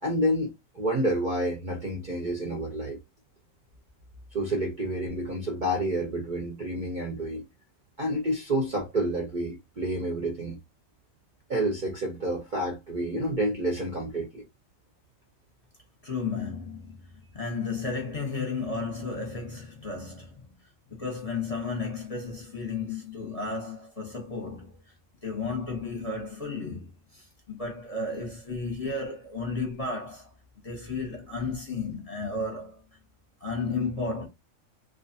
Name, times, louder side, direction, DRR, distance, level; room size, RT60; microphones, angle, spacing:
voice 1, 0.0-3.0 4.3-7.4 8.0-10.6 11.5-14.5, right 1 dB, 50° right, 0.6 m, -29 dB
voice 2, 16.0-20.6 20.9-24.9 25.2-30.3 30.6-32.8 33.4-34.3, left 4 dB, 30° left, 0.8 m, -33 dB
2.4 x 2.4 x 2.5 m
omnidirectional pair, 1.4 m